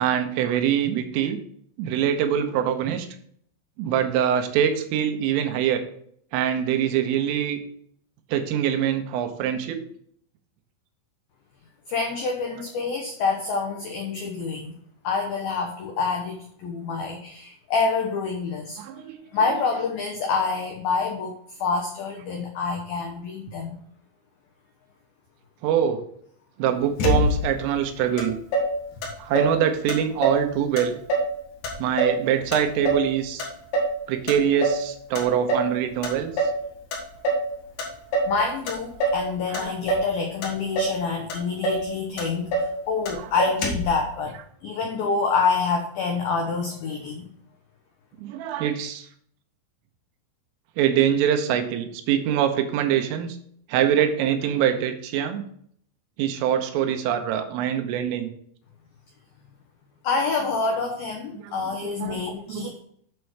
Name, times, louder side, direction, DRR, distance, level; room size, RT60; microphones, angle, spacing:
voice 1, 0.0-1.4 1.8-3.1 3.8-5.8 6.3-7.6 8.3-9.8 18.8-19.2 25.6-26.0 26.6-28.4 29.2-31.0 31.8-33.5 34.1-36.5 39.5-39.7 48.2-49.1 50.8-53.4 53.7-55.4 56.2-58.3 61.4-61.5 62.0-62.2 62.5-62.7, right 9 dB, 90° right, 6 dB, 3.5 m, -24 dB
voice 2, 11.9-14.7 15.0-19.0 19.3-23.8 38.3-44.4 44.6-47.3 60.0-62.8, left 4 dB, 90° left, 2 dB, 2.1 m, -27 dB
Motor vehicle (road), 27.0-27.6 28.2-28.3 28.5-29.6 29.9-30.5 30.8-31.3 31.6-33.1 33.4-34.0 34.3-34.9 35.1-35.7 36.0-36.6 36.9-37.5 37.8-38.4 38.7-39.2 39.5-40.1 40.4-41.0 41.3-41.4 41.6-41.9 42.2-42.7 43.0-43.1 43.4-43.9, right 1 dB, 60° left, 2.3 m, -25 dB
8.2 x 6.5 x 4.6 m, 0.65 s
omnidirectional pair, 5.7 m